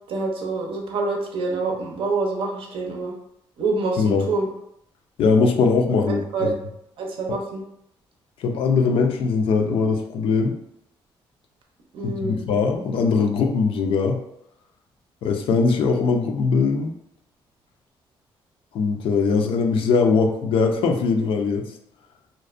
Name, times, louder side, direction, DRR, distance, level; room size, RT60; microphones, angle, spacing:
voice 1, 0.1-3.1 3.6-4.5 6.1-6.6 7.0-7.6 11.9-12.4, right 3 dB, 70° right, 1 dB, 0.6 m, -26 dB
voice 2, 5.2-6.5 7.3-7.4 8.4-10.6 12.0-14.2 15.2-16.9 18.7-21.7, left 4 dB, 70° left, 3 dB, 0.4 m, -21 dB
2.5 x 2.1 x 2.4 m, 0.76 s
cardioid pair, 100°, 10 cm